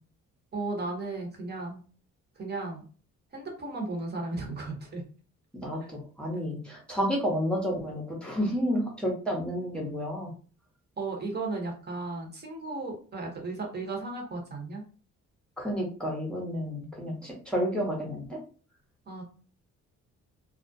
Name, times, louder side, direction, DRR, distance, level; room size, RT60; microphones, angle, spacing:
voice 1, 0.5-1.8 2.4-2.8 3.3-5.0 5.8-5.9 11.0-14.8 19.1-19.2, right 3 dB, 35° right, 1 dB, 0.9 m, -35 dB
voice 2, 5.6-10.3 15.6-18.4, equal, 5° left, -2 dB, 0.8 m, -30 dB
2.3 x 2.1 x 2.6 m, 0.39 s
cardioid pair, 90°, 30 cm